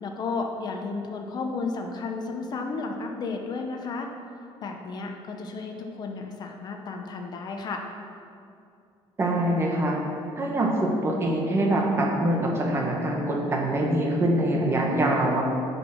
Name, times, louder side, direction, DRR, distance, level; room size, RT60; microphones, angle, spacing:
voice 1, 0.0-4.1 4.6-7.8, left 4 dB, 45° left, 3 dB, 0.8 m, -33 dB
voice 2, 9.2-10.0 10.4-15.4, right 1 dB, 25° right, -1 dB, 1.4 m, -24 dB
9.7 x 5.4 x 6.0 m, 2.5 s
cardioid pair, 145°, 10 cm